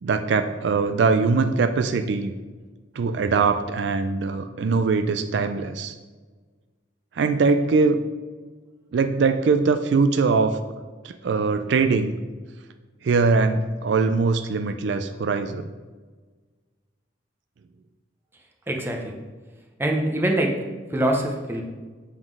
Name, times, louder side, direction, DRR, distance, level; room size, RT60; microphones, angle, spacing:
voice 1, 0.0-2.3 3.0-5.9 7.2-8.0 8.9-10.6 11.0-12.2 13.0-15.6, right 4 dB, 65° right, 8 dB, 0.4 m, -22 dB
voice 2, 18.7-19.2 19.8-20.5 20.9-21.6, right 1 dB, 10° right, 0 dB, 0.7 m, -24 dB
7.4 x 3.8 x 4.8 m, 1.3 s
head